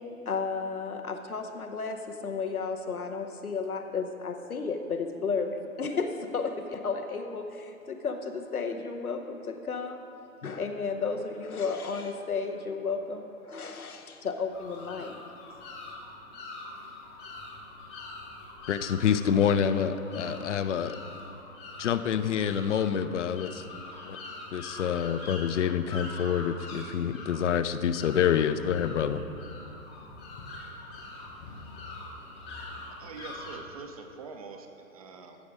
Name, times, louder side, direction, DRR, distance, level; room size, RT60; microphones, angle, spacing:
voice 1, 0.3-10.0 10.4-15.2, left 5 dB, 85° left, 5 dB, 1.0 m, -33 dB
sound 1, 14.5-33.6, left 2 dB, 15° left, 0.7 m, -44 dB
voice 2, 18.7-21.0 21.8-23.6 24.1-24.2 24.5-29.2, left 8 dB, 55° left, 12 dB, 0.5 m, -27 dB
voice 3, 32.9-35.4, right 4 dB, 25° right, 4 dB, 0.5 m, -44 dB
14.5 x 5.1 x 4.8 m, 2.8 s
figure-of-eight pair, 125°, 42 cm